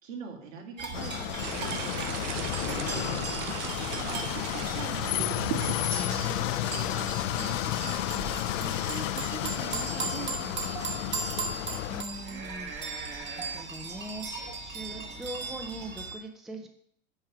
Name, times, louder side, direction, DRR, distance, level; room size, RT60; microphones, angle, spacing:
voice 1, 0.0-5.6 6.5-11.6, right 5 dB, 90° right, 0 dB, 2.1 m, -43 dB
sound 1, 0.8-16.2, right 4 dB, 30° right, 1.2 m, -38 dB
sound 2, 0.9-12.0, left 15 dB, 75° left, 0.5 m, -32 dB
sound 3, 1.4-13.5, right 12 dB, 70° right, 0.7 m, -42 dB
voice 2, 5.8-6.6 11.9-16.7, right 1 dB, ahead, 5 dB, 0.4 m, -42 dB
9.5 x 3.4 x 5.7 m, 0.67 s
supercardioid pair, 130°, 38 cm